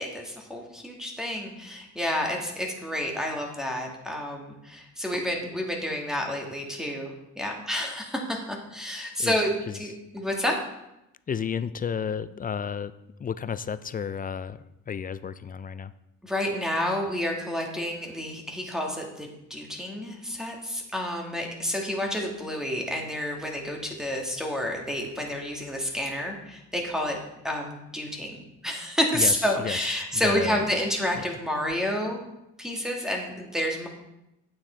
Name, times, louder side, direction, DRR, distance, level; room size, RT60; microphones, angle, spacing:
voice 1, 0.0-10.6 16.2-27.2 27.4-28.4 28.6-32.2 32.6-33.9, equal, ahead, 1 dB, 1.8 m, -29 dB
voice 2, 11.3-12.9 13.2-14.6 14.9-15.9 29.1-30.6 31.2-31.3, left 7 dB, 30° left, 14 dB, 0.4 m, -32 dB
8.6 x 6.2 x 4.4 m, 0.88 s
cardioid pair, 90°, 30 cm